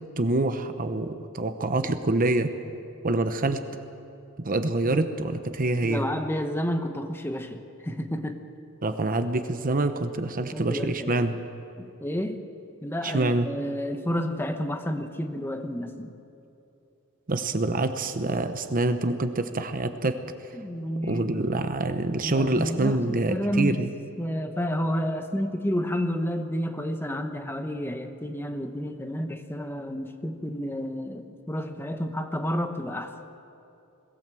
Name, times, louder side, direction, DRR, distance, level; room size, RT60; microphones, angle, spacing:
voice 1, 0.2-2.5 3.0-3.6 4.4-6.0 8.8-11.3 13.0-13.5 17.3-20.2 21.1-23.9, right 2 dB, 40° right, 9 dB, 0.9 m, -26 dB
voice 2, 5.8-8.4 10.5-11.3 11.8-12.4 12.8-16.2 20.5-21.5 22.2-23.9 24.2-33.1, equal, 10° left, 6 dB, 1.0 m, -30 dB
21.5 x 16.0 x 7.6 m, 2.7 s
head